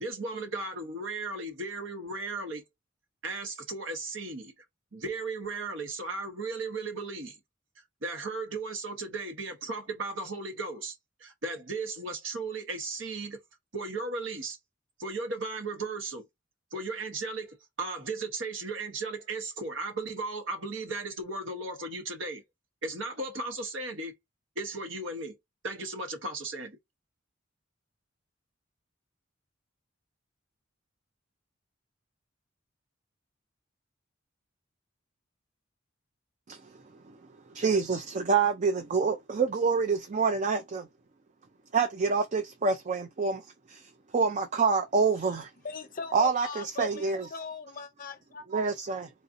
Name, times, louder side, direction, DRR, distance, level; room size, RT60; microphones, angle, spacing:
voice 1, 0.0-2.6 3.2-4.6 4.9-7.4 8.0-13.4 13.7-14.6 15.0-16.2 16.7-22.4 22.8-24.1 24.6-25.4 25.6-26.8, right 3 dB, 70° right, 1.0 m, -36 dB
voice 2, 36.5-37.2 37.5-40.9 41.7-45.5 46.1-47.3 48.5-49.1, right 5 dB, 40° right, 0.4 m, -27 dB
voice 3, 45.6-48.5, left 4 dB, 45° left, 0.6 m, -39 dB
4.0 x 2.6 x 2.5 m
head